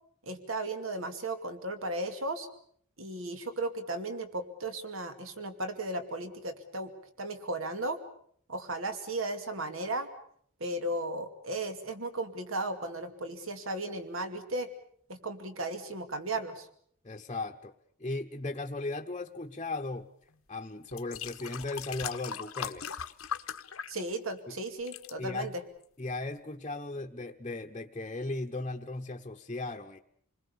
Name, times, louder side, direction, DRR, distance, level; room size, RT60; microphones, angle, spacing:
voice 1, 0.2-2.5 3.0-6.9 7.2-8.0 8.5-10.1 10.6-14.7 15.1-16.7 23.9-25.5, right 2 dB, 75° right, 8 dB, 2.5 m, -35 dB
voice 2, 17.0-17.7 18.0-20.1 20.5-22.8 24.5-24.6 25.2-25.6 26.0-30.0, left 2 dB, 25° left, 1 dB, 1.0 m, -37 dB
sound 1, 20.3-20.4 20.9-24.4 24.7-25.1 25.8-25.9, left 7 dB, 90° left, 1.1 m, -39 dB
28.0 x 21.0 x 7.0 m, 0.63 s
head